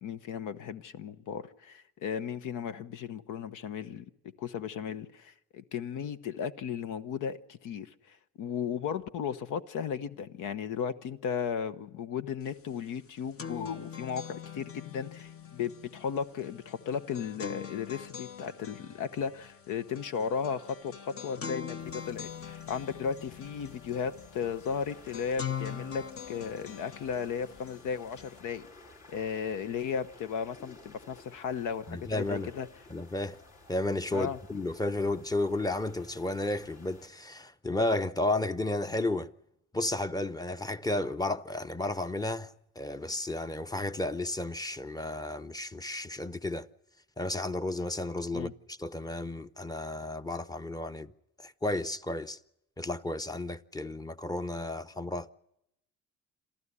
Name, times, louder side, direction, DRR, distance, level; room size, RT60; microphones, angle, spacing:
voice 1, 0.0-4.1 4.4-21.8 22.0-28.7 29.1-32.7 34.1-34.4 48.3-48.5, left 7 dB, 85° left, 1.0 m, -35 dB
sound 1, 12.5-12.6 12.9-28.4, left 7 dB, 50° left, 1.0 m, -43 dB
sound 2, 21.8-37.1, left 2 dB, 65° left, 5.2 m, -55 dB
voice 2, 31.9-32.5 32.9-33.4 33.7-39.3 39.7-46.7 47.2-51.1 51.4-52.4 52.8-55.3, left 2 dB, 15° left, 0.8 m, -33 dB
27.5 x 13.5 x 9.8 m
cardioid pair, 90°, 30 cm